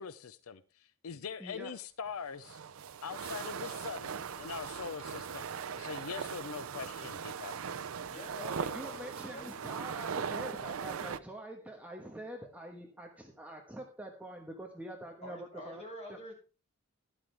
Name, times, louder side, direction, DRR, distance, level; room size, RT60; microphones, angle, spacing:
voice 1, 0.0-2.6 3.0-7.5, left 6 dB, 85° left, 0.6 m, -42 dB
voice 2, 1.4-1.7 8.4-15.8 16.1-16.2, right 1 dB, 5° right, 1.2 m, -45 dB
sound 1, 2.2-11.2, right 6 dB, 75° right, 0.5 m, -39 dB
voice 3, 8.1-9.5 15.2-16.3, equal, 30° left, 6.0 m, -46 dB
12.5 x 11.5 x 3.4 m
head